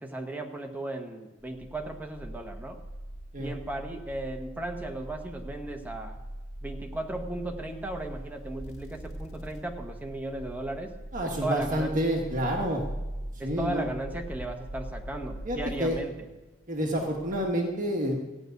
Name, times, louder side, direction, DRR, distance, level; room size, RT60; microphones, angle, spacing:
voice 1, 0.0-2.8 3.4-6.2 6.6-10.9 11.2-11.9 13.4-16.1, right 1 dB, 10° right, 3 dB, 1.2 m, -36 dB
sound 1, 1.5-16.0 16.9-17.5, right 1 dB, 65° left, 5.2 m, -41 dB
voice 2, 11.1-12.8 13.3-13.9 15.4-16.0 16.7-18.2, equal, 35° right, 1 dB, 1.6 m, -28 dB
15.0 x 6.8 x 9.3 m, 1.2 s
head